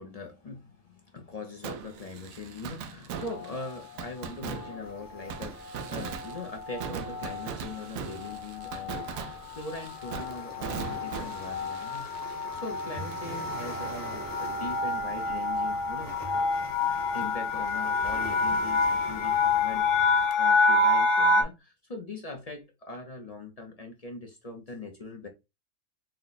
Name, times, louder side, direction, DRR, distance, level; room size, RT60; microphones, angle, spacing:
voice 1, 0.0-16.1 17.1-25.3, left 3 dB, 40° left, 0.6 m, -41 dB
Fireworks, 1.6-13.3 13.6-13.7 20.3-20.4, right 7 dB, 90° right, 1.1 m, -40 dB
sound 1, 3.3-3.8 4.5-4.9 5.2-5.4 5.7-21.4, left 3 dB, 65° left, 1.1 m, -28 dB
sound 2, 4.8-20.3, right 1 dB, 20° right, 0.8 m, -45 dB
4.4 x 2.2 x 4.0 m
omnidirectional pair, 1.4 m